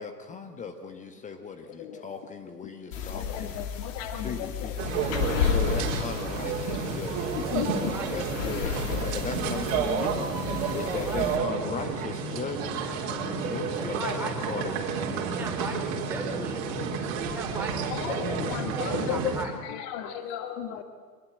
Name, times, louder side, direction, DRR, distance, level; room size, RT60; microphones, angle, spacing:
voice 1, 0.0-14.7 20.8-20.9, left 5 dB, 15° left, 6 dB, 1.5 m, -38 dB
sound 1, 2.9-11.4, left 7 dB, 50° left, 3.0 m, -33 dB
voice 2, 3.1-4.3 7.4-7.9 10.5-10.6 16.8-16.9 17.9-19.2 19.7-20.8, left 10 dB, 35° left, 8 dB, 1.5 m, -34 dB
sound 2, 4.8-19.5, right 5 dB, 35° right, 4.1 m, -31 dB
voice 3, 7.7-8.2 10.8-11.6 13.2-16.7 17.1-19.5, right 2 dB, 5° right, 0 dB, 3.3 m, -39 dB
24.5 x 20.5 x 8.0 m, 1.6 s
figure-of-eight pair, 110°, 48 cm